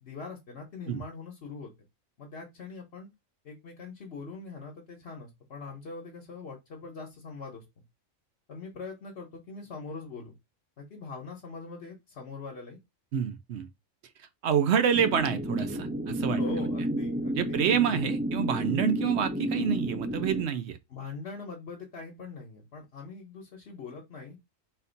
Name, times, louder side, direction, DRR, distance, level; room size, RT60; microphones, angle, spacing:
voice 1, 0.0-1.7 2.2-3.1 3.4-7.6 8.5-10.3 10.8-12.8 16.4-17.6 20.9-24.4, left 4 dB, 55° left, 1.3 m, -42 dB
voice 2, 13.1-13.7 14.2-16.4 17.3-20.8, right 8 dB, 65° right, 0.8 m, -27 dB
sound 1, 14.9-20.4, equal, 10° right, 0.5 m, -31 dB
4.3 x 2.7 x 3.9 m
omnidirectional pair, 1.4 m